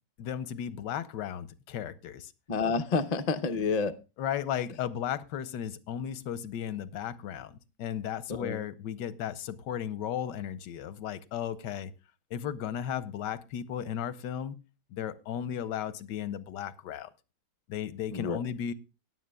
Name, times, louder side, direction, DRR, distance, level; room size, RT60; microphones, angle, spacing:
voice 1, 0.2-2.3 4.2-7.5 7.8-11.9 12.3-14.6 14.9-17.1 17.7-18.7, left 9 dB, 90° left, 15 dB, 1.3 m, -35 dB
voice 2, 2.5-3.9 8.3-8.6 18.1-18.4, left 4 dB, 75° left, 8 dB, 0.3 m, -29 dB
17.0 x 9.7 x 2.2 m, 0.29 s
omnidirectional pair, 1.8 m